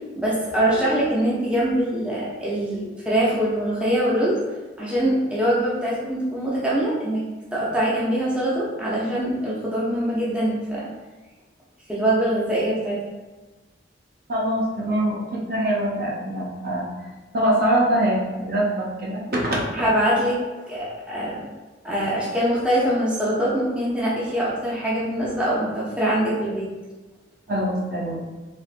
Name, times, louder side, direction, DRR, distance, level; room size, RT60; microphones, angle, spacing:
voice 1, 0.2-4.4 4.8-7.2 7.5-10.9 11.9-13.0 19.7-20.4 20.7-21.4 21.8-26.7, right 1 dB, 5° right, -8 dB, 0.6 m, -23 dB
voice 2, 14.3-16.9 17.3-19.7 27.5-28.2, right 1 dB, 55° right, -4 dB, 0.7 m, -23 dB
3.3 x 3.1 x 2.5 m, 1.2 s
head